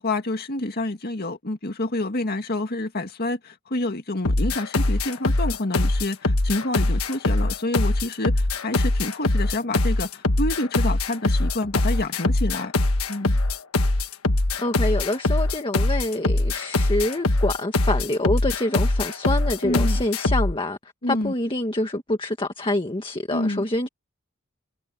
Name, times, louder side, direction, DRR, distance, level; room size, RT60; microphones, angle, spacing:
voice 1, 0.0-12.7 13.1-13.4 19.6-20.0 21.0-21.3 23.3-23.7, left 2 dB, 45° left, 2.1 m, -28 dB
sound 1, 4.2-20.5, left 2 dB, 80° left, 1.4 m, -22 dB
voice 2, 14.6-20.8 21.1-23.9, left 1 dB, 25° left, 1.7 m, -26 dB
head